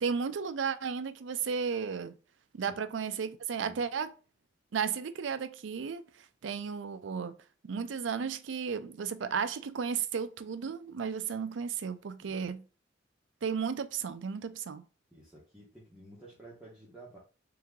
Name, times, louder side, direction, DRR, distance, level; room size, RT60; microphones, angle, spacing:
voice 1, 0.0-2.1 2.5-4.1 4.7-7.3 7.6-12.6 13.4-14.8, right 6 dB, 80° right, 0.4 m, -34 dB
voice 2, 15.1-17.2, right 2 dB, 5° right, 1.0 m, -52 dB
3.8 x 2.8 x 3.6 m
head